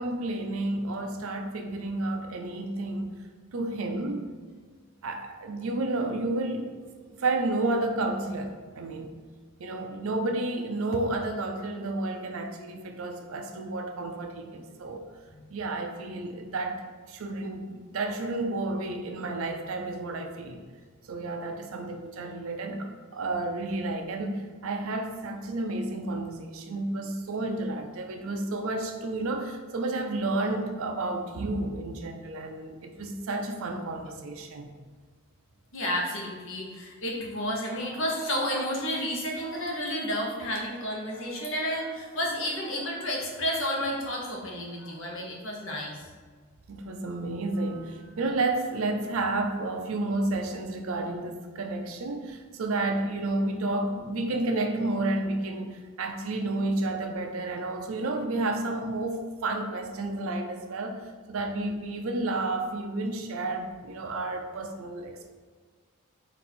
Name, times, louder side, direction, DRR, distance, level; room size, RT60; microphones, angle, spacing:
voice 1, 0.0-3.2 3.5-4.3 5.0-6.8 7.1-9.1 9.6-15.0 15.5-16.8 17.1-20.6 21.1-34.7 46.7-61.0 61.3-65.3, right 2 dB, 70° right, 5 dB, 0.5 m, -31 dB
voice 2, 35.7-46.1, equal, 60° left, -2 dB, 0.9 m, -31 dB
4.1 x 2.6 x 4.2 m, 1.5 s
head